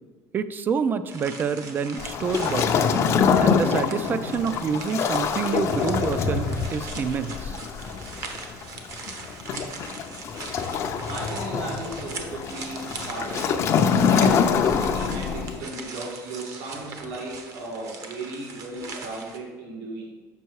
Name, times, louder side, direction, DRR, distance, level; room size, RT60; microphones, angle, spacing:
voice 1, 0.3-2.7 3.4-7.6, right 6 dB, 25° right, 13 dB, 0.3 m, -27 dB
sound 1, 1.1-19.4, right 4 dB, 40° right, 0.9 m, -40 dB
Waves surf, 2.0-15.6, left 6 dB, 35° left, 0.5 m, -25 dB
voice 2, 11.0-20.1, right 2 dB, 75° right, -2 dB, 1.7 m, -36 dB
6.8 x 5.4 x 4.6 m, 1.4 s
cardioid pair, 155°, 8 cm